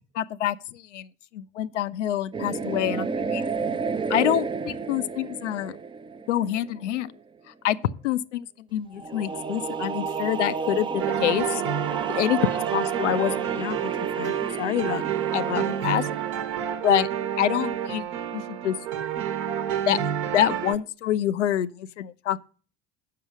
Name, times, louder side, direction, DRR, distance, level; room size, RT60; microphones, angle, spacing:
voice 1, 0.2-1.1 1.3-3.5 4.1-5.8 6.3-7.1 7.6-8.5 8.7-11.6 12.1-12.4 12.7-15.1 15.3-16.0 16.8-17.1 17.4-18.1 18.3-18.8 19.9-20.0 20.3-22.5, left 12 dB, 75° left, 0.5 m, -26 dB
sound 1, 2.3-6.9 9.0-16.8, right 5 dB, 15° right, 0.5 m, -32 dB
sound 2, 11.0-20.7, right 10 dB, 60° right, 1.1 m, -29 dB
7.4 x 6.1 x 7.3 m
figure-of-eight pair, 60°, 36 cm